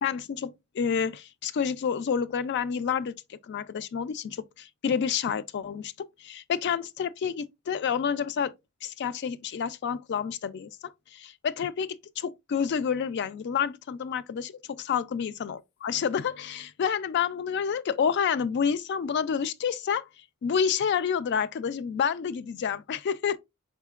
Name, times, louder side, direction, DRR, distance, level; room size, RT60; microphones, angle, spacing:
voice 1, 0.0-8.5 8.8-11.9 12.2-20.0 20.4-23.4, left 7 dB, 50° left, 0.3 m, -29 dB
4.9 x 3.7 x 2.3 m
head